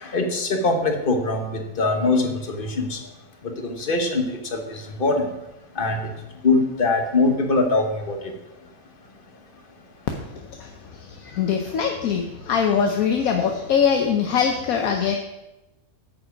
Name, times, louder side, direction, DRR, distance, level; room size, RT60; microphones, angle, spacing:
voice 1, 0.0-3.0 3.6-5.3 5.8-6.0 6.4-8.2, left 3 dB, 40° left, 1.3 m, -22 dB
voice 2, 10.1-10.7 11.0-15.2, left 7 dB, 75° left, 1.2 m, -23 dB
9.1 x 7.2 x 5.1 m
omnidirectional pair, 1.5 m